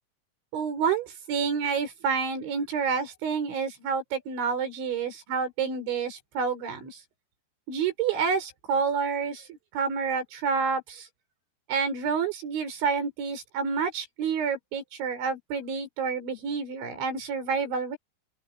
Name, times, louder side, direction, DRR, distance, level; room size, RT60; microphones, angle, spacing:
voice 1, 0.5-7.0 7.7-11.1 11.7-18.0, right 6 dB, 70° right, 8.6 m, -29 dB
open air
omnidirectional pair, 5.5 m